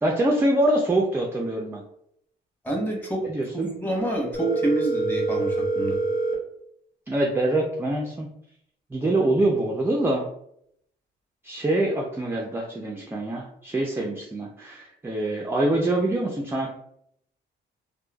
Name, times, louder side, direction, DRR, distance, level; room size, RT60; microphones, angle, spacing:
voice 1, 0.0-1.8 3.2-3.7 7.1-8.3 8.9-10.2 11.4-16.7, right 1 dB, 10° right, 0 dB, 0.3 m, -24 dB
voice 2, 2.6-3.2 3.5-6.0, right 2 dB, 10° left, -2 dB, 0.9 m, -27 dB
Telephone, 4.3-6.3, right 2 dB, 90° left, 0.9 m, -25 dB
3.0 x 2.1 x 2.2 m, 0.72 s
cardioid pair, 90°, 20 cm